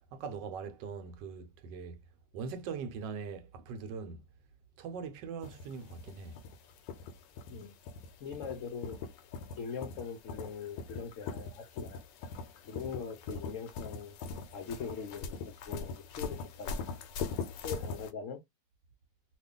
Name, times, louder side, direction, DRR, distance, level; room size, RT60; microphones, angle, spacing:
voice 1, 0.1-2.0 2.3-4.3 4.8-6.4, right 5 dB, 85° right, 1.3 m, -41 dB
sound 1, 5.4-18.1, left 4 dB, 85° left, 1.3 m, -42 dB
voice 2, 8.2-9.0 9.6-12.0 12.6-14.2 14.5-16.9 17.6-18.4, left 6 dB, 65° left, 0.7 m, -41 dB
2.8 x 2.4 x 3.6 m
omnidirectional pair, 1.9 m